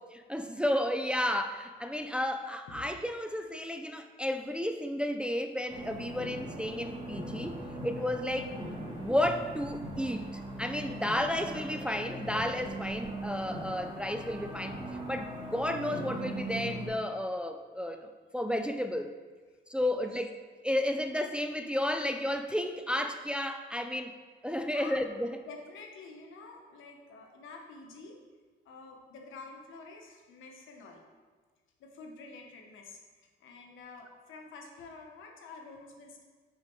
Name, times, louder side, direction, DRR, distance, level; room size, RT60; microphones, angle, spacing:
voice 1, 0.1-7.6 7.8-8.5 9.0-14.8 15.1-19.2 19.7-24.1 24.4-25.3, left 1 dB, 5° right, 6 dB, 0.4 m, -32 dB
sound 1, 5.7-16.9, right 1 dB, 25° right, 1.6 m, -40 dB
voice 2, 24.7-25.0 25.4-28.2 28.6-31.1 31.8-36.2, left 3 dB, 80° left, 3 dB, 1.0 m, -49 dB
5.5 x 5.0 x 4.6 m, 1.4 s
cardioid pair, 90°, 20 cm